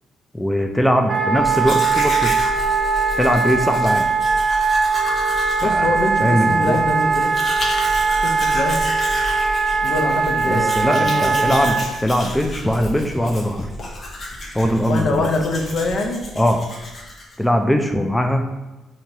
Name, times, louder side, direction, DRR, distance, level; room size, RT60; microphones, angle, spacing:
voice 1, 0.3-2.3 3.2-4.1 5.6-5.9 6.2-6.8 10.5-11.8 12.0-13.7 14.5-15.3 16.4-16.6 17.4-18.5, equal, 5° left, 4 dB, 0.4 m, -20 dB
Wind instrument woodwind instrument, 1.1-11.9, right 4 dB, 35° right, 0.6 m, -20 dB
Domestic sounds home sounds, 1.4-17.4, left 1 dB, 45° left, 1.0 m, -31 dB
voice 2, 5.6-7.3 8.2-8.8 9.8-11.8 14.9-16.2, left 2 dB, 65° left, 3 dB, 0.6 m, -24 dB
4.4 x 2.8 x 2.8 m, 1.1 s
cardioid pair, 80°, 0 cm